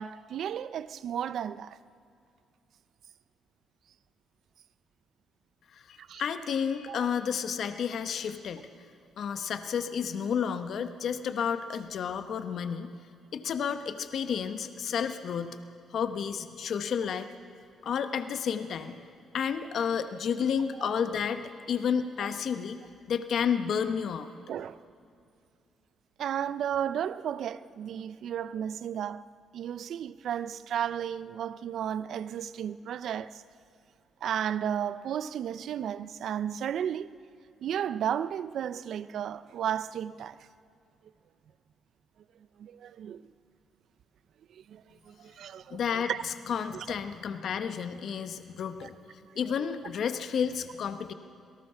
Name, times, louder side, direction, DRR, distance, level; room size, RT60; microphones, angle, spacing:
voice 1, 0.0-1.8 6.0-6.2 6.9-7.1 20.8-21.0 24.5-24.8 26.2-29.2 29.5-33.4 34.2-37.1 37.6-40.4 42.6-43.2 44.5-46.2 46.7-46.9 48.8-48.9 49.2-49.4, right 9 dB, 70° right, 0.5 m, -34 dB
voice 2, 5.7-8.7 9.2-12.9 13.3-15.6 15.9-17.3 17.8-19.0 19.3-22.8 23.1-24.3 45.7-48.9 49.3-51.1, left 7 dB, 65° left, 1.0 m, -31 dB
27.0 x 18.0 x 5.7 m
cardioid pair, 90°, 0 cm